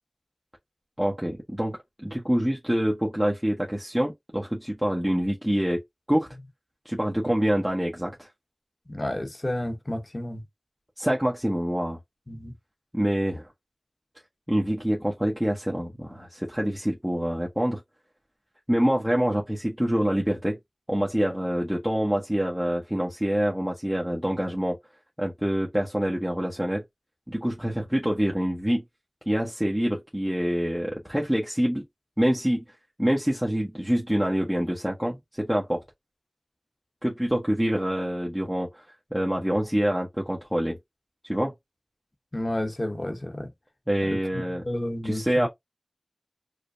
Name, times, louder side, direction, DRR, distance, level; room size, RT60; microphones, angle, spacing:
voice 1, 1.0-5.8 6.1-6.3 6.8-8.3 11.0-12.0 12.9-13.5 14.5-17.8 18.7-20.6 20.9-24.8 25.2-26.8 27.3-28.8 29.3-31.8 32.2-32.6 33.0-35.8 37.0-38.8 39.1-40.8 41.2-41.5 43.9-44.6 45.0-45.5, equal, 10° right, 0.9 m, -26 dB
voice 2, 8.9-10.4 12.3-12.5 42.3-43.5 44.1-45.5, left 1 dB, 45° left, 0.9 m, -31 dB
4.9 x 2.1 x 2.5 m
wide cardioid pair, 50°, 0 cm